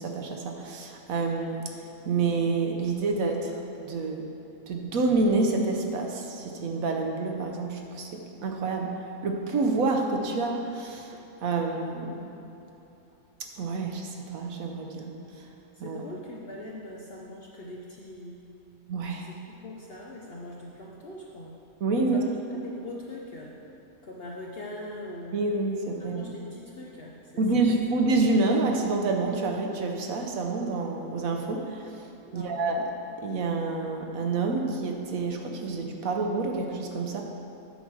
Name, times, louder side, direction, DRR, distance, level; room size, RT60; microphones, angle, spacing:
voice 1, 0.0-1.7 2.0-4.3 4.7-8.9 9.2-12.3 13.4-15.1 15.8-16.0 18.9-19.3 21.8-22.3 25.3-26.3 27.4-31.9 32.3-32.9 33.2-37.2, right 3 dB, 65° right, 2 dB, 1.1 m, -28 dB
voice 2, 15.7-18.4 19.1-21.6 22.1-23.6 24.0-25.4 26.0-27.7 32.2-32.6, left 1 dB, 55° left, -2 dB, 0.7 m, -42 dB
8.1 x 4.7 x 6.0 m, 2.9 s
omnidirectional pair, 1.6 m